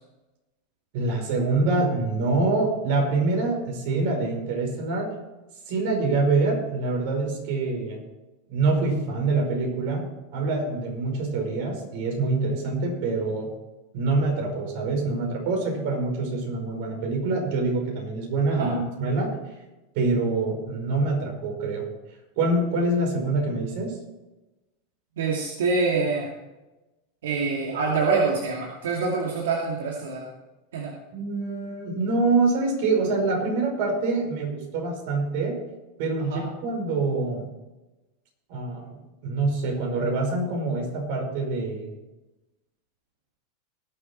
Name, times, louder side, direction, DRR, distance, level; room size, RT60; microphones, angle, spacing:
voice 1, 0.9-5.1 5.7-8.0 8.5-10.1 10.3-13.5 13.9-19.4 20.0-21.9 22.4-24.0 31.1-35.6 36.0-37.5 38.5-41.9, right 3 dB, 65° right, 1 dB, 5.3 m, -25 dB
voice 2, 25.2-26.3 27.2-30.3 30.7-30.9 36.3-36.5, right 4 dB, 90° right, -2 dB, 2.4 m, -25 dB
19.5 x 7.3 x 4.5 m, 1.0 s
supercardioid pair, 130°, 0 cm